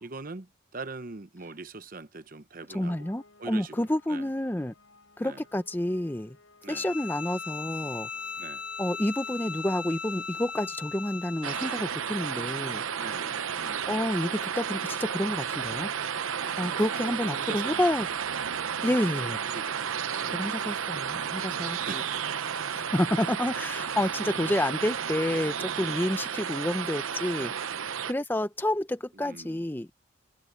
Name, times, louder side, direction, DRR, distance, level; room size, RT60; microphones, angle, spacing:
voice 1, 0.0-3.0 3.4-4.3 5.2-5.4 6.6-6.9 8.4-8.6 13.0-13.8 16.4-18.1 18.8-19.1 19.5-20.5 21.8-22.5 25.6-26.0 27.4-27.6 29.2-29.6, right 3 dB, 45° right, 0.9 m, -43 dB
voice 2, 2.7-4.7 5.2-6.4 6.7-8.1 8.8-12.8 13.9-15.9 16.6-18.1 18.8-19.4 20.2-22.0 22.7-27.5 28.1-30.1, left 1 dB, 10° left, 0.6 m, -29 dB
sound 1, 2.8-9.7, left 3 dB, 75° left, 6.3 m, -58 dB
Bowed string instrument, 6.7-11.9, left 5 dB, 40° left, 2.2 m, -38 dB
sound 2, 11.4-28.1, right 7 dB, 85° right, 0.8 m, -32 dB
head